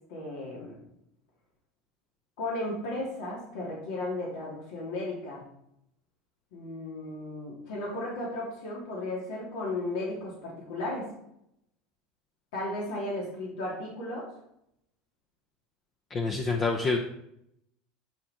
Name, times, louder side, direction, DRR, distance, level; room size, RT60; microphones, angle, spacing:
voice 1, 0.1-0.8 2.4-5.4 6.5-11.1 12.5-14.3, left 2 dB, 80° left, -4 dB, 2.9 m, -35 dB
voice 2, 16.1-17.0, left 4 dB, 30° left, 3 dB, 0.7 m, -27 dB
10.0 x 4.7 x 4.3 m, 0.78 s
supercardioid pair, 135°, 0 cm